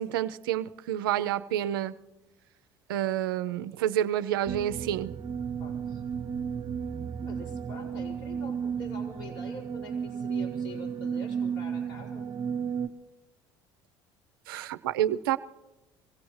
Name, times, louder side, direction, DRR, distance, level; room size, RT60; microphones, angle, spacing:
voice 1, 0.0-2.0 2.9-5.1 14.5-15.4, right 11 dB, 90° right, 13 dB, 0.5 m, -29 dB
sound 1, 4.5-12.9, right 7 dB, 45° right, 0.9 m, -33 dB
voice 2, 5.6-6.0 7.2-12.3, left 2 dB, 80° left, -4 dB, 5.2 m, -45 dB
24.5 x 17.5 x 3.2 m, 1.0 s
hypercardioid pair, 70°, 11 cm